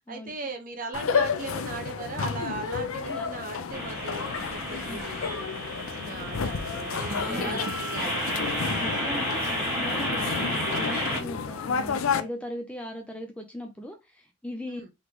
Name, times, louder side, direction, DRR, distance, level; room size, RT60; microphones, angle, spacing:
voice 1, 0.1-8.5 14.7-14.9, right 3 dB, 40° right, 0.9 m, -39 dB
sound 1, 0.9-12.2, left 5 dB, 80° left, 0.5 m, -31 dB
sound 2, 3.7-11.2, equal, 10° right, 1.5 m, -32 dB
Door, 6.8-8.1, right 3 dB, 80° right, 0.5 m, -43 dB
voice 2, 7.0-7.7 8.7-14.8, equal, 5° left, 0.5 m, -38 dB
4.0 x 3.1 x 3.0 m
head